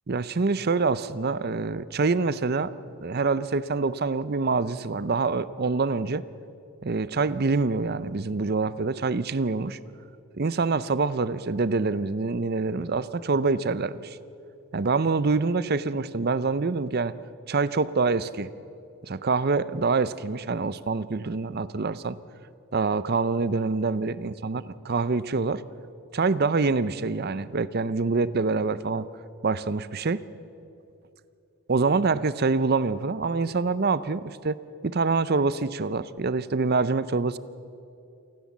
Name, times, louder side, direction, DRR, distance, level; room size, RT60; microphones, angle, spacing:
voice 1, 0.1-2.7 3.0-6.2 6.8-9.8 10.3-14.2 14.7-17.1 17.5-18.5 19.1-22.2 22.7-24.6 24.9-25.6 26.1-29.1 29.4-30.2 31.7-37.4, right 4 dB, 45° right, 16 dB, 0.6 m, -25 dB
28.0 x 14.0 x 7.3 m, 2.7 s
head